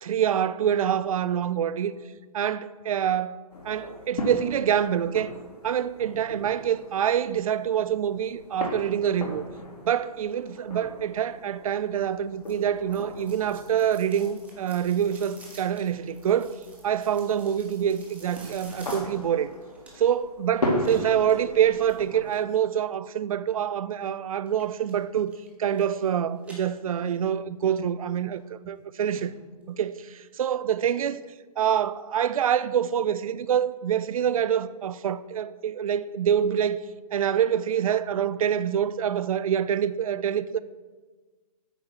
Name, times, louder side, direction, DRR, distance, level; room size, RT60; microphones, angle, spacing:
voice 1, 0.0-1.9 2.3-3.4 3.6-5.3 5.6-9.4 9.8-16.6 16.8-19.5 20.0-25.3 25.6-29.3 29.7-31.2 31.6-36.8 37.1-40.6, right 9 dB, 60° right, 0.5 m, -26 dB
sound 1, 3.5-22.3, left 1 dB, 85° left, 2.3 m, -37 dB
sound 2, 12.4-20.2 20.8-22.5 24.5-25.0 25.3-26.1 26.4-27.3 27.7-27.8 28.4-28.5 28.8-28.9 29.1-29.2 29.6-29.7, right 2 dB, 5° right, 1.6 m, -50 dB
9.0 x 7.8 x 4.2 m
hypercardioid pair, 140°, 20 cm